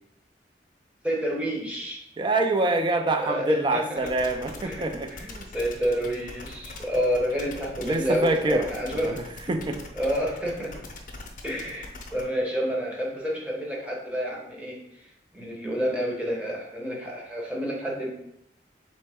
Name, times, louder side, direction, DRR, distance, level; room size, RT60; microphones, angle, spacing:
voice 1, 1.0-2.0 3.2-4.0 4.6-9.2 9.9-10.8 11.4-18.1, equal, 5° right, -3 dB, 0.8 m, -29 dB
voice 2, 2.2-5.5 7.8-8.7 8.9-9.2 9.5-9.8, right 2 dB, 25° right, 6 dB, 0.3 m, -25 dB
sound 1, 4.0-12.2, left 2 dB, 50° left, 0.6 m, -42 dB
3.8 x 3.1 x 3.4 m, 0.78 s
head